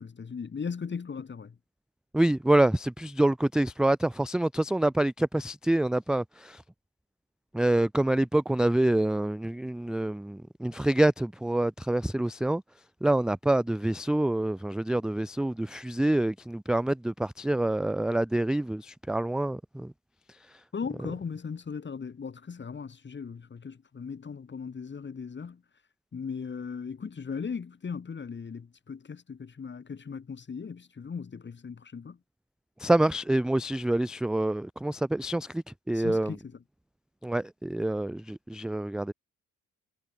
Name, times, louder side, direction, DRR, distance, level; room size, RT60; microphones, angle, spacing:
voice 1, 0.0-1.6 20.7-25.6 26.1-32.2 35.9-36.6, left 6 dB, 35° left, 3.8 m, -38 dB
voice 2, 2.1-6.6 7.5-12.6 13.0-19.9 32.8-36.4 37.2-39.1, right 1 dB, 5° right, 0.3 m, -26 dB
cardioid pair, 90°, 30 cm